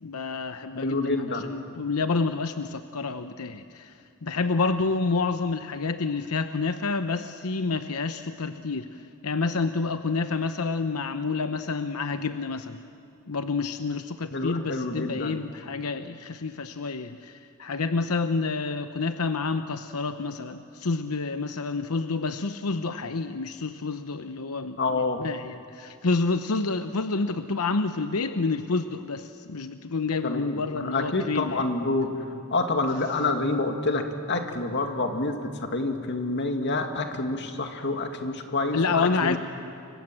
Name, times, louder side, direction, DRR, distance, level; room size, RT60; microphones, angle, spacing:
voice 1, 0.0-3.9 4.2-8.9 9.2-12.8 13.3-31.6 38.7-39.4, left 4 dB, 90° left, 9 dB, 0.9 m, -28 dB
voice 2, 0.7-1.4 14.3-15.4 24.8-25.2 30.2-32.1 32.5-39.4, left 2 dB, 55° left, 5 dB, 2.4 m, -28 dB
29.5 x 24.5 x 7.7 m, 2.6 s
head